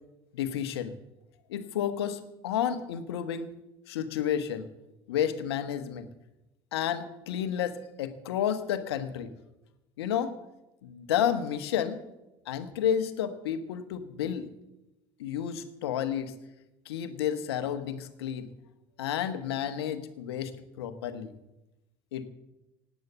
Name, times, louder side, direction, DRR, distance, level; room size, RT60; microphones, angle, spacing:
voice 1, 0.3-0.9 1.5-3.5 3.9-4.7 5.1-6.1 6.7-9.3 10.0-10.4 10.8-12.0 12.5-14.5 15.2-16.3 16.8-18.5 19.0-21.3 22.1-22.3, left 9 dB, 80° left, 11 dB, 1.3 m, -31 dB
17.0 x 9.6 x 7.2 m, 0.96 s
hypercardioid pair, 70°, 13 cm